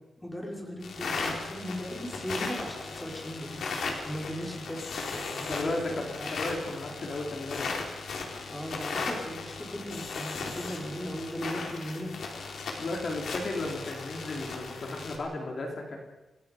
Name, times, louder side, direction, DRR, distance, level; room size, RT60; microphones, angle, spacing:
voice 1, 0.2-6.3 8.5-12.1, equal, 10° left, -1 dB, 4.9 m, -38 dB
sound 1, 0.8-15.2, left 4 dB, 80° left, 4.1 m, -37 dB
voice 2, 5.4-6.1 6.4-7.7 12.8-16.0, left 2 dB, 45° left, 0 dB, 3.8 m, -34 dB
29.0 x 20.0 x 5.3 m, 1.0 s
wide cardioid pair, 165°, 0 cm